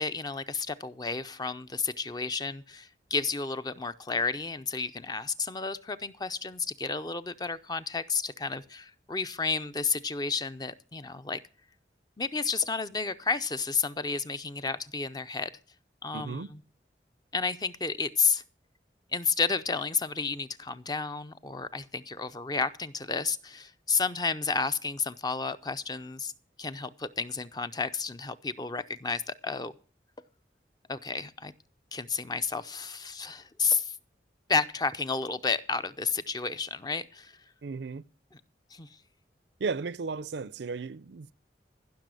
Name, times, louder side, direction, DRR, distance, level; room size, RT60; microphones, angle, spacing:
voice 1, 0.0-11.4 12.2-15.5 16.0-16.6 17.3-18.4 19.1-26.3 26.6-29.7 30.9-31.5 31.9-34.0 34.5-37.4 38.7-38.9, left 4 dB, 20° left, 0.5 m, -31 dB
voice 2, 16.1-16.5 37.6-38.0 39.6-41.3, right 4 dB, 75° right, 0.5 m, -35 dB
15.5 x 6.2 x 7.6 m
head